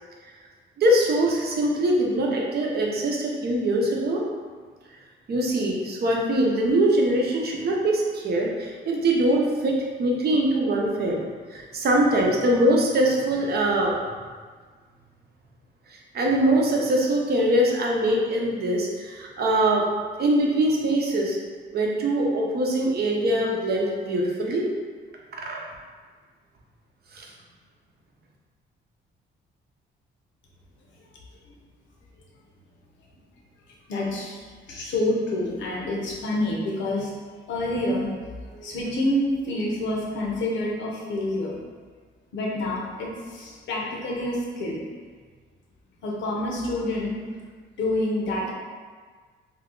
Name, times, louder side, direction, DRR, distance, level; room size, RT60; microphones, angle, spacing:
voice 1, 0.8-4.2 5.3-11.2 11.5-14.0 15.9-19.9 20.2-21.4 21.7-24.7 25.4-25.6 27.1-27.3, right 1 dB, 55° right, -1 dB, 0.7 m, -23 dB
voice 2, 33.7-37.1 37.5-41.6 42.3-44.8 46.0-47.4 47.8-48.5, left 1 dB, 70° left, -2 dB, 0.8 m, -28 dB
2.8 x 2.3 x 3.7 m, 1.5 s
cardioid pair, 90°, 20 cm